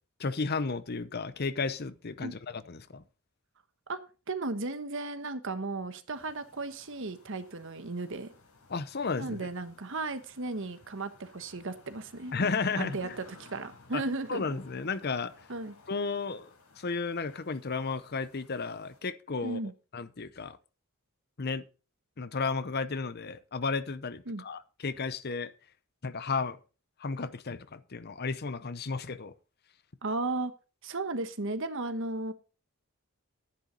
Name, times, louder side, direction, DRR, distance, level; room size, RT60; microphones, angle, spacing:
voice 1, 0.2-3.0 8.7-9.5 12.3-13.0 13.9-14.0 14.3-15.3 15.9-19.6 19.9-20.6 21.4-21.6 22.2-25.5 26.0-26.6 27.0-29.3, left 4 dB, 45° left, 0.7 m, -33 dB
voice 2, 4.3-8.3 9.2-12.3 12.8-14.6 15.5-15.7 19.4-19.7 24.3-24.4 30.0-30.5 30.8-32.3, right 2 dB, 60° right, 1.2 m, -35 dB
sound 1, 6.1-19.0, left 3 dB, 80° left, 4.7 m, -57 dB
11.0 x 10.0 x 4.0 m
head